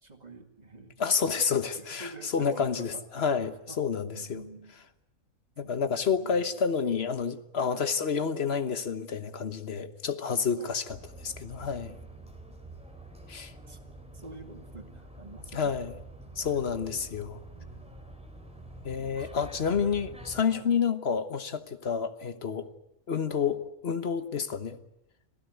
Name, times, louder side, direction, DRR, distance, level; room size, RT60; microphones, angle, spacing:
voice 1, 0.0-1.5 1.7-3.4 3.7-3.8 4.1-4.8 5.6-6.6 10.5-10.7 13.7-15.8 17.0-17.1 17.5-18.0 18.9-19.9 20.5-20.7, right 2 dB, 30° right, 5 dB, 2.4 m, -48 dB
voice 2, 1.0-4.4 5.6-11.0 11.2-12.0 13.3-13.5 15.5-15.9 16.4-17.4 18.8-22.7 23.1-24.8, left 6 dB, 50° left, 11 dB, 1.4 m, -29 dB
sound 1, 10.9-20.4, right 1 dB, 5° right, 3.4 m, -47 dB
26.0 x 15.5 x 9.4 m, 0.87 s
omnidirectional pair, 1.4 m